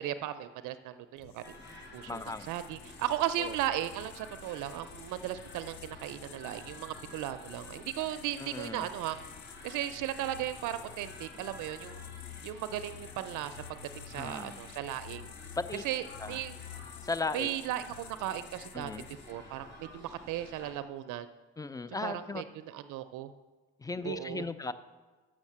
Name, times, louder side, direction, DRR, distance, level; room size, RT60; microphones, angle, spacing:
voice 1, 0.0-1.4 1.9-9.2 9.6-12.0 12.4-15.3 15.8-16.6 17.3-18.9 19.3-21.3 22.0-23.3 24.0-24.5, right 12 dB, 85° right, 11 dB, 0.4 m, -36 dB
sound 1, 1.2-19.5, left 10 dB, 75° left, 0.5 m, -50 dB
sound 2, 1.4-20.7, left 1 dB, 35° left, 2.9 m, -51 dB
voice 2, 2.1-2.5 3.4-3.5 8.4-8.9 14.2-14.6 15.6-15.8 16.2-16.4 17.0-17.5 18.7-19.1 21.6-22.4 23.8-24.7, left 3 dB, 10° left, 13 dB, 0.4 m, -36 dB
6.4 x 6.2 x 7.3 m, 1.3 s
cardioid pair, 90°, 30 cm